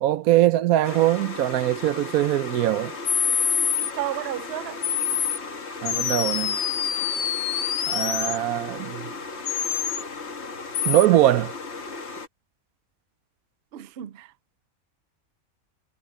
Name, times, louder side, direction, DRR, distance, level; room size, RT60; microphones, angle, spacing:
voice 1, 0.0-2.9 5.8-6.6 7.9-9.1 10.9-11.5, right 14 dB, 85° right, 1.1 m, -22 dB
sound 1, 0.8-12.3, left 3 dB, 50° left, 1.7 m, -36 dB
sound 2, 3.1-3.9 4.8-5.4 5.9-8.4 9.5-10.0 10.7-11.1, left 9 dB, 90° left, 1.4 m, -25 dB
voice 2, 3.9-4.8 13.7-14.3, right 14 dB, 55° right, 0.7 m, -32 dB
omnidirectional pair, 1.5 m